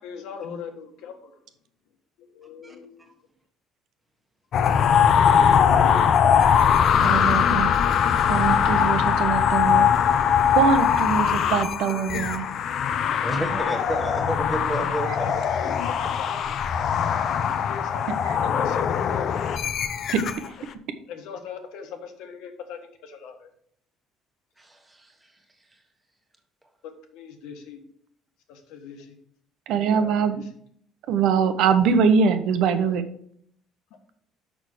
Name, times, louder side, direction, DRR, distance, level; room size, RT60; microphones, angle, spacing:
voice 1, 0.0-1.4 2.2-2.9 4.7-6.1 6.6-7.4 13.2-13.8 15.0-16.5 17.4-19.3 21.1-23.5 26.8-27.8 28.5-29.2 30.0-30.5 33.9-34.0, left 6 dB, 80° left, 4 dB, 1.6 m, -40 dB
voice 2, 2.4-3.1 7.2-7.4 13.2-15.8 24.6-25.3, right 1 dB, 10° right, 3 dB, 1.3 m, -32 dB
sound 1, 4.5-20.5, left 8 dB, 45° left, 0.6 m, -21 dB
voice 3, 7.0-7.7 8.3-9.9 10.5-12.5 20.1-20.2 29.7-30.4 31.1-33.1, right 6 dB, 65° right, 10 dB, 1.0 m, -22 dB
6.2 x 6.2 x 6.6 m, 0.65 s
cardioid pair, 155°, 0 cm